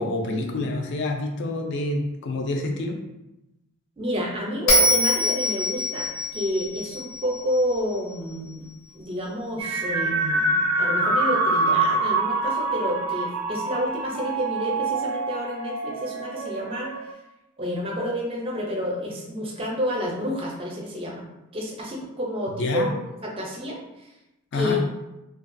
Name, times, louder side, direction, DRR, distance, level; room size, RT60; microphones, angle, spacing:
voice 1, 0.0-3.0 22.6-22.9 24.5-24.8, left 2 dB, 55° left, 2 dB, 0.4 m, -27 dB
voice 2, 4.0-8.7 8.9-16.9 17.6-21.2 21.5-24.1 24.5-24.8, equal, 25° right, -2 dB, 0.5 m, -29 dB
Bell, 4.7-7.9, left 1 dB, 75° left, 0.8 m, -23 dB
sound 1, 9.6-17.1, right 2 dB, 90° right, 0.4 m, -25 dB
2.3 x 2.2 x 2.5 m, 0.94 s
head